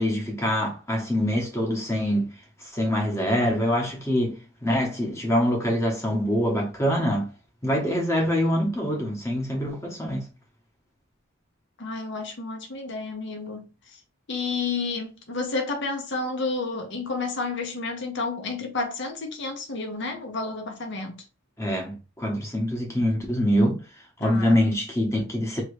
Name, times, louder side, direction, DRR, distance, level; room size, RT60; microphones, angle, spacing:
voice 1, 0.0-7.3 7.6-10.2 21.6-23.8 24.2-25.6, equal, 15° left, 1.1 m, -25 dB
voice 2, 11.8-13.7 14.3-21.2 24.2-24.6, left 3 dB, 55° left, 0.9 m, -30 dB
3.0 x 2.9 x 3.2 m
head